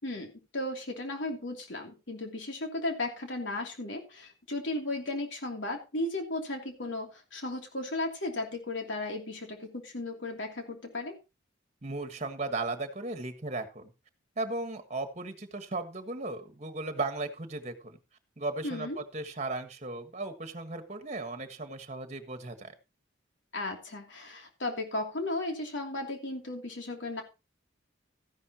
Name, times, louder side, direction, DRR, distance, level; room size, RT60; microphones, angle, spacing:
voice 1, 0.0-11.2 18.6-19.0 23.5-27.2, left 2 dB, 80° left, 3 dB, 2.9 m, -35 dB
voice 2, 11.8-13.9 14.4-18.0 18.4-22.7, right 2 dB, 35° right, 8 dB, 1.5 m, -36 dB
14.0 x 11.0 x 2.9 m, 0.27 s
head